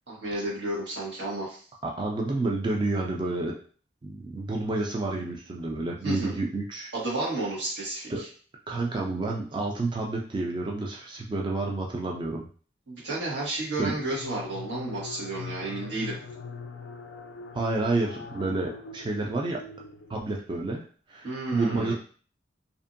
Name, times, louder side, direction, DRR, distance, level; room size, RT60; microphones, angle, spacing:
voice 1, 0.1-1.6 6.0-6.4 6.9-8.3 12.9-16.2 21.2-21.9, right 2 dB, 90° right, -6 dB, 1.3 m, -32 dB
voice 2, 1.8-3.6 4.0-6.9 8.1-8.2 8.7-12.5 13.8-13.9 17.5-19.6 20.1-20.8 21.1-21.9, right 2 dB, 25° right, -1 dB, 0.4 m, -29 dB
sound 1, 13.6-20.5, left 4 dB, 75° left, 0.4 m, -42 dB
2.6 x 2.5 x 2.5 m, 0.42 s
head